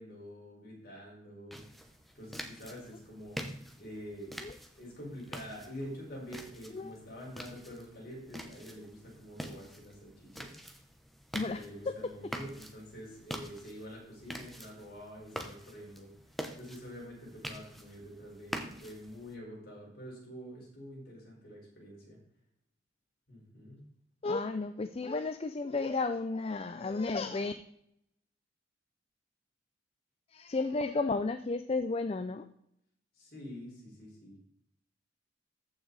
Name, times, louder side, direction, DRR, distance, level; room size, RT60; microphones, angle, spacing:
voice 1, 0.0-4.4 4.6-10.6 11.4-16.1 16.5-22.2 23.3-23.9 33.1-34.4, equal, 50° left, -3 dB, 4.6 m, -47 dB
sound 1, 1.5-19.3, equal, ahead, 0.9 m, -46 dB
voice 2, 11.3-11.9 24.2-27.5 30.3-32.5, left 3 dB, 30° left, 9 dB, 0.4 m, -33 dB
14.0 x 6.1 x 4.0 m, 0.76 s
head